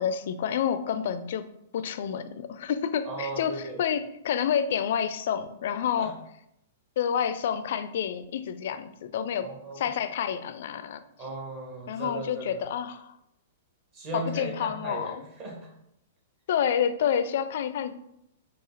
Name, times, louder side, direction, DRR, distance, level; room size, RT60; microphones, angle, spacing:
voice 1, 0.0-1.5 1.7-6.1 7.0-9.5 9.8-11.0 11.9-13.1 14.1-15.2 16.5-17.9, left 8 dB, 65° left, 12 dB, 0.4 m, -29 dB
voice 2, 3.1-3.8 6.0-6.1 9.4-9.9 11.2-12.6 13.9-15.7, right 2 dB, 40° right, -1 dB, 1.7 m, -36 dB
4.9 x 2.4 x 4.0 m, 0.79 s
hypercardioid pair, 125°, 0 cm